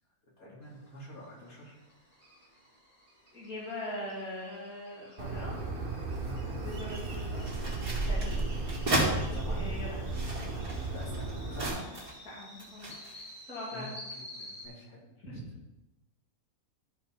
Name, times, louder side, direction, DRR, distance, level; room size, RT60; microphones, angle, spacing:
voice 1, 0.4-1.8 6.2-6.5 8.2-8.4 9.3-9.6 10.9-11.8 13.7-15.0 15.3-15.4, left 1 dB, 70° left, -4 dB, 3.1 m, -46 dB
sound 1, 0.6-14.7, left 1 dB, 35° left, 3.8 m, -52 dB
voice 2, 3.3-5.5 6.4-7.4 8.1-8.4 9.1-10.1 10.5-10.6 12.2-12.9 13.4-14.0 15.2-15.3, left 1 dB, 85° left, -7 dB, 2.8 m, -41 dB
Bird, 5.2-11.7, right 2 dB, 40° right, 1.3 m, -34 dB
sound 2, 7.3-9.1 9.9-12.2 12.6-13.3, right 1 dB, 70° right, 2.9 m, -34 dB
13.0 x 5.5 x 4.4 m, 0.98 s
omnidirectional pair, 1.5 m